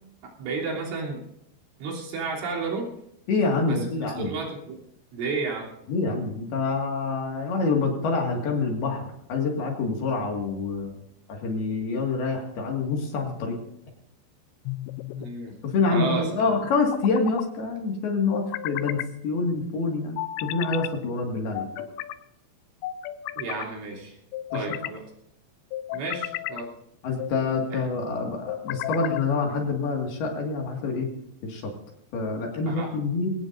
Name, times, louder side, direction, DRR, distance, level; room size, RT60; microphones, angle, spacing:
voice 1, 0.2-1.2 1.8-2.9 3.7-4.8 5.1-5.7 15.2-15.5 15.9-16.5 23.4-24.2 24.5-25.0 25.9-26.7 27.7-27.8 32.7-32.9, right 4 dB, 70° right, -3 dB, 5.7 m, -32 dB
voice 2, 3.3-4.4 5.9-9.0 9.3-11.0 11.3-13.6 15.6-21.7 24.5-24.8 27.0-31.1 31.4-31.7 32.1-33.3, left 4 dB, 60° left, 1 dB, 3.6 m, -26 dB
sound 1, 14.7-15.3 16.7-17.5 18.3-19.1 20.2-20.9 21.5-22.2 22.8-23.7 24.3-25.0 25.7-26.6 27.2-27.7 28.5-29.3, left 14 dB, 85° left, 2.5 m, -33 dB
23.5 x 17.5 x 2.6 m, 0.76 s
omnidirectional pair, 5.8 m